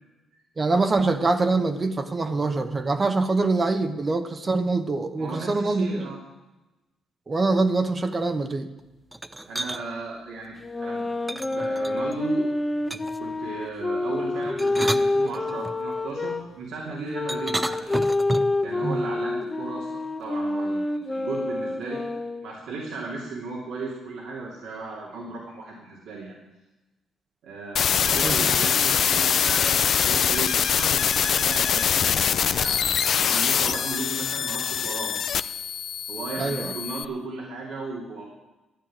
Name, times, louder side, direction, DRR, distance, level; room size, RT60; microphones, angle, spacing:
voice 1, 0.6-6.0 7.3-8.7 18.8-19.0 28.2-28.5 36.4-36.7, right 3 dB, 30° right, 7 dB, 1.0 m, -24 dB
voice 2, 5.2-6.2 9.5-11.0 11.5-12.5 13.2-18.0 18.6-22.0 22.4-26.4 27.4-32.8 33.2-35.1 36.1-38.2, right 3 dB, 80° right, -3 dB, 2.7 m, -35 dB
sound 1, 9.1-9.8 11.3-12.2 12.9-13.3 14.4-15.8 17.3-18.6, right 2 dB, 15° right, 0.6 m, -31 dB
sound 2, 10.6-16.4 17.1-22.6, left 2 dB, 20° left, 1.0 m, -27 dB
sound 3, 27.8-37.0, left 8 dB, 60° left, 0.6 m, -23 dB
12.5 x 9.2 x 8.7 m, 1.1 s
cardioid pair, 90°, 0 cm